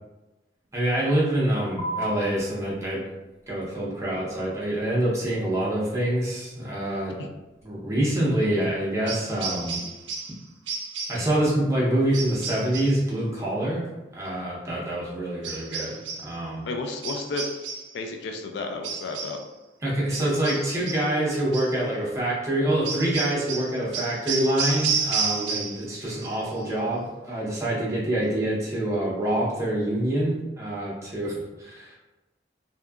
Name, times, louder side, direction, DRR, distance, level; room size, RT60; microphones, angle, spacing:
voice 1, 0.7-3.0 3.5-7.2 7.6-9.8 11.1-13.9 14.1-15.9 16.2-16.6 19.8-32.0, right 1 dB, 15° right, -6 dB, 0.7 m, -26 dB
sound 1, 1.8-8.8, right 1 dB, 15° left, 1.1 m, -41 dB
sound 2, 9.1-10.4 10.7-11.3 12.1-13.0 15.4-16.3 17.0-18.0 18.8-19.5 20.1-21.1 21.5-21.8 22.8-25.9 26.2-26.7, right 5 dB, 85° right, 0.4 m, -31 dB
voice 2, 16.6-17.4 17.9-19.4, left 3 dB, 65° left, 3 dB, 0.3 m, -32 dB
2.7 x 2.3 x 2.3 m, 1.1 s
head